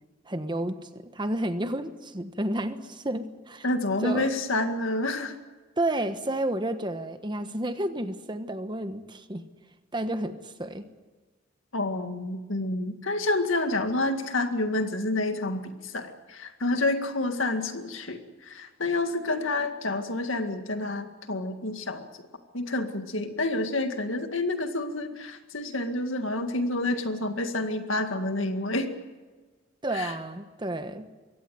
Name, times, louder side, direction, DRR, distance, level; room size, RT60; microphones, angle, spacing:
voice 1, 0.2-3.7 4.0-4.3 5.8-9.4 9.9-10.8 29.8-31.2, right 1 dB, 25° right, 9 dB, 1.2 m, -31 dB
voice 2, 3.6-5.4 11.7-22.1 22.5-28.9 29.9-30.1, left 2 dB, 85° left, 7 dB, 2.0 m, -29 dB
23.0 x 17.0 x 9.3 m, 1.3 s
head